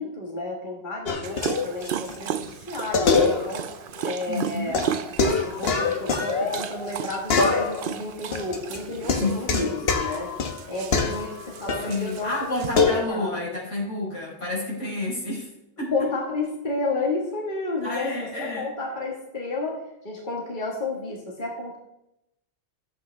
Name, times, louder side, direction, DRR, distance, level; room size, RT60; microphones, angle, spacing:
voice 1, 0.0-3.7 4.0-4.9 5.4-10.3 10.7-13.4 14.8-14.9 15.9-21.8, left 3 dB, 45° left, -2 dB, 1.8 m, -31 dB
sound 1, 1.1-2.2 2.4-2.5 2.9-3.7 4.0-4.1 4.7-7.0 7.3-8.0 8.3-12.0 12.7-13.0, left 4 dB, 60° left, 1.1 m, -24 dB
Dog, 1.2-12.8, right 9 dB, 60° right, 0.6 m, -35 dB
voice 2, 4.3-4.8 9.2-9.6 11.9-15.5 15.8-15.9 17.8-18.7, left 2 dB, 85° left, -7 dB, 5.1 m, -30 dB
13.0 x 8.3 x 3.4 m, 0.85 s
omnidirectional pair, 1.2 m